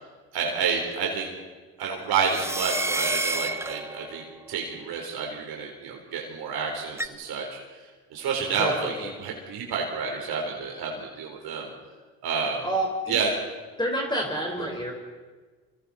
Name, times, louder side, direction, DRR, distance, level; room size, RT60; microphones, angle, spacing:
voice 1, 0.3-1.3 1.8-4.2 4.5-7.6 8.1-11.7 12.2-12.7 13.1-13.3, right 5 dB, 70° right, 0 dB, 4.2 m, -29 dB
sound 1, 2.2-4.3 7.0-7.1, right 2 dB, 5° right, 0.9 m, -29 dB
voice 2, 8.6-9.1 12.6-13.2 13.8-14.9, right 1 dB, 10° left, 0 dB, 4.7 m, -28 dB
29.5 x 24.0 x 4.3 m, 1.4 s
supercardioid pair, 80°, 39 cm